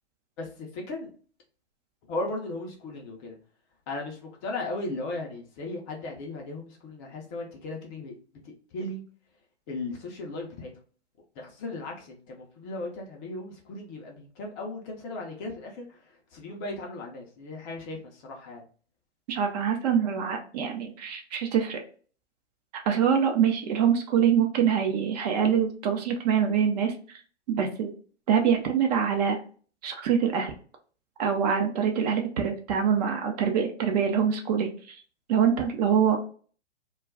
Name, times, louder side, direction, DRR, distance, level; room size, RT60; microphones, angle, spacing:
voice 1, 0.4-1.1 2.1-3.4 3.9-8.1 8.4-9.0 9.7-10.7 11.4-18.6, left 2 dB, 25° left, 0 dB, 0.5 m, -36 dB
voice 2, 19.3-21.8 22.8-26.9 27.5-27.9 28.3-29.4 29.8-30.5 31.2-35.0 35.3-36.2, right 7 dB, 35° right, 3 dB, 0.6 m, -24 dB
2.3 x 2.2 x 3.4 m, 0.41 s
hypercardioid pair, 120°, 34 cm